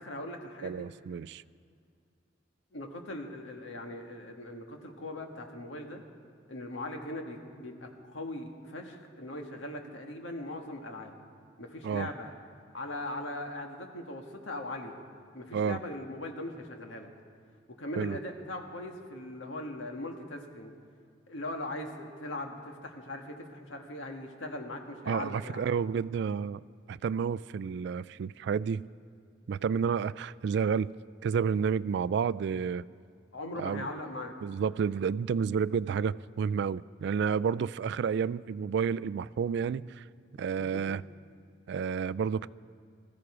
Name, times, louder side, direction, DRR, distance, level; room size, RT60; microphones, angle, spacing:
voice 1, 0.0-0.9 2.7-6.0 6.5-11.1 11.6-12.3 12.7-15.0 15.3-17.1 17.7-20.7 21.3-25.6 33.3-34.3 40.6-40.7, left 1 dB, 90° left, 3 dB, 1.6 m, -40 dB
voice 2, 0.6-1.4 11.8-12.1 15.5-15.8 18.0-18.2 25.1-26.6 26.9-28.8 29.5-30.9 31.2-32.9 33.6-33.9 34.4-40.0 40.4-41.0 41.7-42.5, right 6 dB, 65° right, 18 dB, 0.3 m, -30 dB
19.5 x 14.5 x 4.9 m, 2.2 s
head